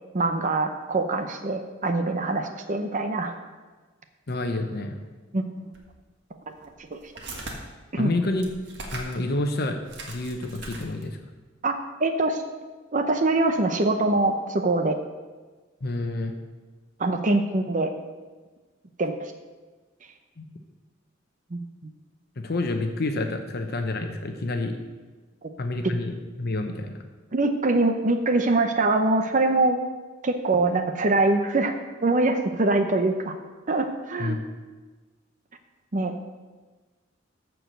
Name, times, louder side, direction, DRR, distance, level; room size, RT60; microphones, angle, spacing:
voice 1, 0.1-3.3 5.3-5.4 6.9-7.0 7.9-8.1 11.6-11.7 12.0-12.4 12.9-15.0 17.0-17.9 19.0-19.1 21.5-21.6 27.3-29.8 30.2-31.8 32.0-33.3 33.7-34.4 35.9-36.2, right 2 dB, 40° right, 6 dB, 0.7 m, -23 dB
voice 2, 4.3-5.0 8.0-8.4 8.9-9.8 10.1-11.2 15.8-16.3 20.4-20.5 22.4-24.7 25.6-26.9 34.2-34.4, left 2 dB, 55° left, 5 dB, 0.8 m, -28 dB
sound 1, 5.7-5.8 6.5-7.6 8.3-9.2 9.5-9.6 9.9-11.1, right 2 dB, 60° right, 1.7 m, -39 dB
14.0 x 4.7 x 6.6 m, 1.3 s
head